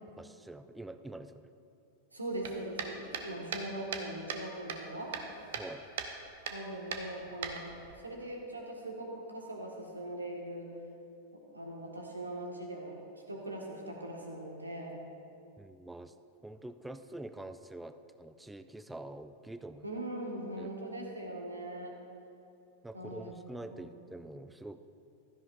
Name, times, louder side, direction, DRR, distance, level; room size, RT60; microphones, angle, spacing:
voice 1, 0.2-1.5 5.6-5.9 15.6-16.2 16.4-19.9 20.6-20.7 22.8-24.8, right 2 dB, 5° right, 10 dB, 0.4 m, -46 dB
voice 2, 2.1-5.1 6.5-7.8 8.0-10.7 11.5-13.0 13.3-15.0 19.8-21.9 22.9-23.3 23.7-23.8, right 1 dB, 80° right, 0 dB, 1.7 m, -41 dB
sound 1, 2.4-4.4 4.7-5.7 6.0-6.1 6.5-6.6 6.9-7.9, right 7 dB, 55° right, 0.9 m, -38 dB
16.0 x 13.0 x 2.6 m, 2.7 s
figure-of-eight pair, 90°, 0 cm